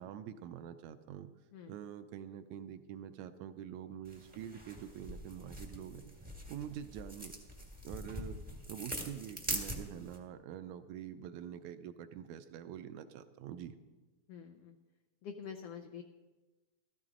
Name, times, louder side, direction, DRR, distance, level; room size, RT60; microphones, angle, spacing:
voice 1, 0.0-1.3 1.7-6.1 6.5-7.3 7.8-8.4 8.7-13.8, right 9 dB, 80° right, 10 dB, 1.8 m, -46 dB
sound 1, 4.0-10.2, right 1 dB, 10° right, 0.5 m, -43 dB
voice 2, 14.3-14.8 15.2-16.0, left 7 dB, 90° left, 5 dB, 1.3 m, -46 dB
14.0 x 13.5 x 3.7 m, 1.2 s
omnidirectional pair, 3.5 m